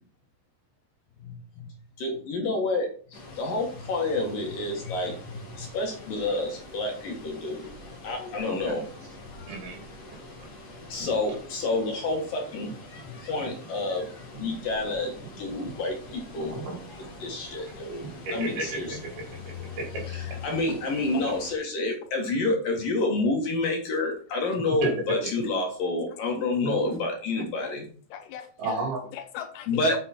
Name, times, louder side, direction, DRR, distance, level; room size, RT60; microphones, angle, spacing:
voice 1, 1.2-1.7 2.0-7.7 8.0-8.8 9.4-9.5 10.9-12.7 13.1-14.1 14.4-16.6 17.2-18.0 18.3-19.0 20.4-27.8 29.7-30.0, left 2 dB, 60° left, 2.9 m, -29 dB
Water, 3.1-21.5, left 2 dB, 45° left, 1.3 m, -45 dB
voice 2, 8.4-8.8 9.5-9.8 12.6-12.7 15.5-15.7 16.4-17.1 17.7-17.8 18.0-20.0 24.8-25.3 26.6-27.1 28.6-29.1, right 3 dB, 60° right, 5.1 m, -33 dB
voice 3, 28.1-28.8 29.1-30.0, left 9 dB, 80° left, 2.7 m, -40 dB
8.3 x 6.9 x 4.3 m
omnidirectional pair, 5.2 m